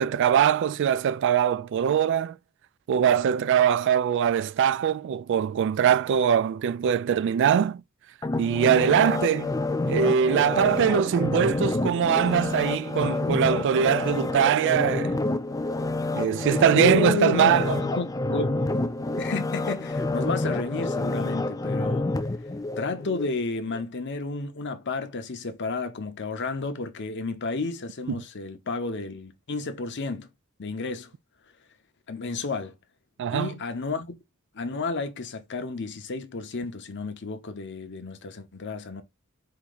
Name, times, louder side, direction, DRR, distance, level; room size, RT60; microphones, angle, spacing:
voice 1, 0.0-2.4 2.9-7.8 8.4-9.5 9.9-15.2 16.1-17.8 28.1-28.2 33.2-33.5, right 8 dB, 55° right, 0.3 m, -22 dB
sound 1, 8.2-23.3 23.7-23.8, left 2 dB, 15° left, 0.4 m, -28 dB
voice 2, 16.7-18.6 19.2-22.1 22.8-30.3 30.6-31.1 32.1-32.7 33.3-34.1 34.5-39.0, left 3 dB, 55° left, 0.9 m, -31 dB
4.7 x 2.9 x 3.9 m
head